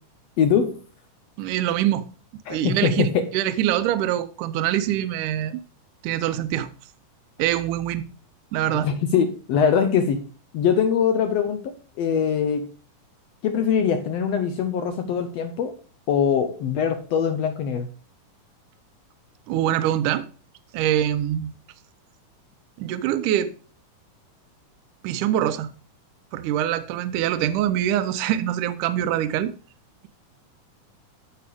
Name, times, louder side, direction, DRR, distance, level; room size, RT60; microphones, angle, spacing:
voice 1, 0.4-0.8 2.5-3.3 8.8-10.3 10.5-12.7 13.4-15.8 16.1-17.9, left 7 dB, 75° left, 1.5 m, -22 dB
voice 2, 1.4-2.0 2.5-5.6 6.0-6.7 7.4-8.1 8.5-8.9 19.5-20.3 20.7-21.5 22.8-23.5 25.0-25.7 26.3-29.5, right 11 dB, 80° right, 2.1 m, -24 dB
13.5 x 5.2 x 3.4 m
omnidirectional pair, 3.7 m